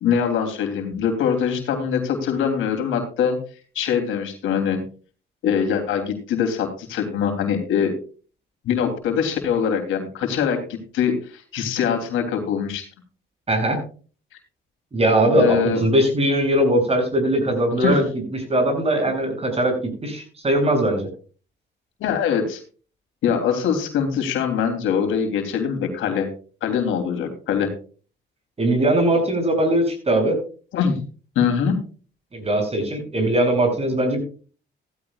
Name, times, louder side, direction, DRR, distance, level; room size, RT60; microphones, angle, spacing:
voice 1, 0.0-3.4 3.7-4.8 5.4-7.9 8.6-10.6 10.9-12.9 15.3-15.8 17.8-18.0 22.0-22.6 23.2-26.3 26.6-27.7 30.7-31.0 31.3-31.8, left 7 dB, 85° left, 4 dB, 3.1 m, -23 dB
voice 2, 13.5-13.8 14.9-18.0 18.3-19.7 20.0-21.1 28.6-30.4 32.3-34.2, right 1 dB, 30° right, 3 dB, 7.5 m, -20 dB
16.0 x 14.5 x 2.4 m, 0.39 s
cardioid pair, 90°, 20 cm